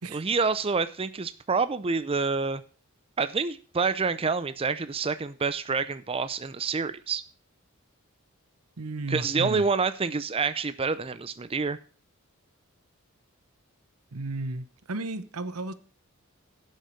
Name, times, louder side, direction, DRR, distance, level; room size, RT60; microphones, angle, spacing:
voice 1, 0.1-2.6 3.2-7.2 9.1-11.8, right 4 dB, 25° right, 13 dB, 0.5 m, -27 dB
voice 2, 8.8-9.6 14.1-15.7, right 2 dB, 85° right, 14 dB, 1.0 m, -34 dB
11.0 x 6.5 x 6.4 m, 0.39 s
head